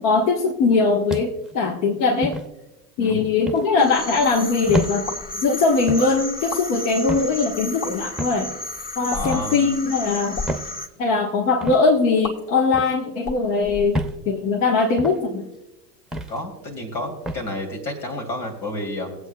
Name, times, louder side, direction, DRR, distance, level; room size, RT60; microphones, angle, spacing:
voice 1, 0.0-2.4 3.0-8.6 9.0-10.6 11.0-15.5, left 4 dB, 65° left, -1 dB, 1.5 m, -21 dB
sound 1, 1.1-1.5 2.2-2.5 3.5-3.7 4.7-5.0 5.9-6.1 7.1-7.3 8.2-8.4 9.2-9.5 10.5-10.7 11.6-11.8 12.7-13.0 13.9-14.2 15.0-15.2 16.1-16.4 17.3-17.5, equal, ahead, 0.7 m, -28 dB
voice 2, 3.0-3.3 9.1-9.6 16.3-19.2, left 1 dB, 90° left, 1 dB, 2.9 m, -30 dB
sound 2, 3.8-10.9, left 2 dB, 15° left, 1.8 m, -33 dB
sound 3, 5.0-5.4 6.3-6.7 7.7-7.9 9.1-9.4 10.2-10.5 12.2-12.3 13.2-14.4, left 3 dB, 35° left, 1.7 m, -33 dB
21.0 x 8.1 x 2.3 m, 0.93 s
hypercardioid pair, 95°, 50 cm